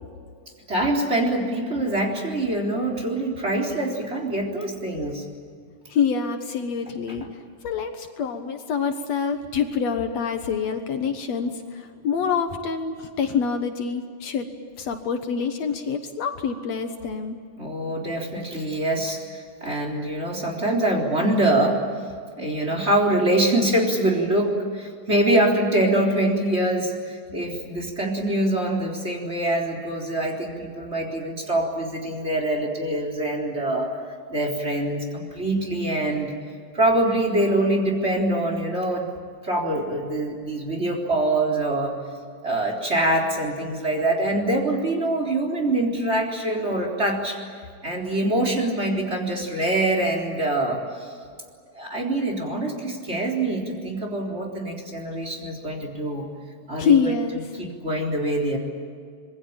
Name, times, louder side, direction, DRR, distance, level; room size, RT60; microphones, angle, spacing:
voice 1, 0.7-5.2 17.6-21.8 22.4-33.9 34.3-36.3 36.7-39.1 39.4-42.0 42.4-47.4 47.8-51.1 51.7-56.3 56.7-57.1 57.6-58.6, right 1 dB, 20° right, 2 dB, 4.1 m, -24 dB
voice 2, 5.9-7.3 7.6-14.5 14.8-17.4 56.8-57.5, left 6 dB, 65° left, 6 dB, 2.4 m, -26 dB
26.0 x 22.0 x 9.0 m, 2.2 s
omnidirectional pair, 3.3 m